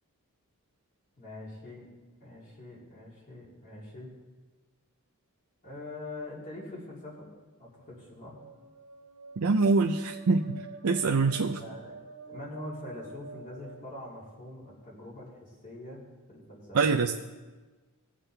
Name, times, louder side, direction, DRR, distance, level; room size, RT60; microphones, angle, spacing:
voice 1, 1.2-1.9 2.2-4.1 5.6-7.3 7.6-8.4 11.4-11.9 12.3-16.0 16.3-16.9, left 2 dB, 35° left, -5 dB, 3.3 m, -44 dB
sound 1, 7.7-14.5, right 4 dB, 90° right, 2.1 m, -48 dB
voice 2, 9.4-11.6 16.7-17.2, right 4 dB, 70° right, 2 dB, 0.5 m, -25 dB
20.0 x 7.4 x 3.4 m, 1.3 s
head